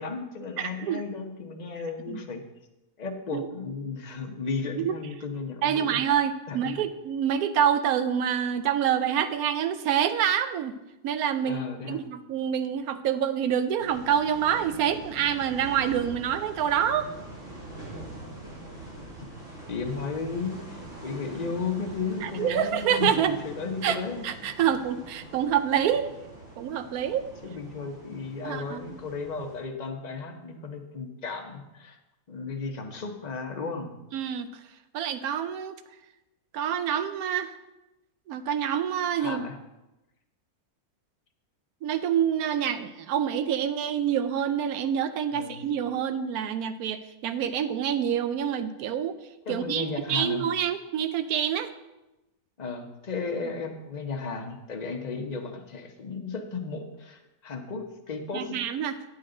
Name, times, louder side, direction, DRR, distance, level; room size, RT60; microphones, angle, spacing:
voice 1, 0.0-2.4 3.0-6.0 6.5-6.8 11.4-12.0 19.7-24.3 27.4-32.0 32.3-33.9 39.2-39.6 45.3-45.7 49.5-50.4 52.6-58.6, left 4 dB, 35° left, 3 dB, 0.8 m, -34 dB
voice 2, 0.6-1.0 2.1-2.2 3.3-3.5 4.7-4.9 5.6-10.8 11.0-17.1 22.2-23.4 23.8-24.0 24.2-26.1 26.6-27.3 28.4-29.0 34.1-34.5 34.9-35.8 36.5-37.5 38.3-39.4 41.8-49.1 49.5-51.7 58.3-59.0, right 9 dB, 80° right, 11 dB, 1.1 m, -27 dB
sound 1, 13.8-29.6, right 2 dB, 55° right, 4.2 m, -44 dB
9.3 x 8.3 x 3.8 m, 0.98 s
omnidirectional pair, 1.6 m